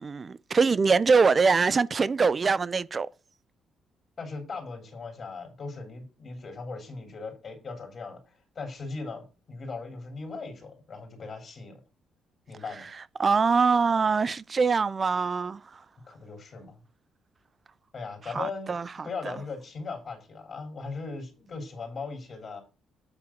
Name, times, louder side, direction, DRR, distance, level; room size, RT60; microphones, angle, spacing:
voice 1, 0.0-3.1 13.2-15.6 18.3-19.3, right 5 dB, 30° right, 0.4 m, -23 dB
voice 2, 4.2-11.8 12.5-12.9 16.1-16.8 17.9-18.7 19.0-22.6, left 4 dB, 40° left, 3.3 m, -38 dB
8.7 x 3.8 x 5.9 m
cardioid pair, 115°, 0 cm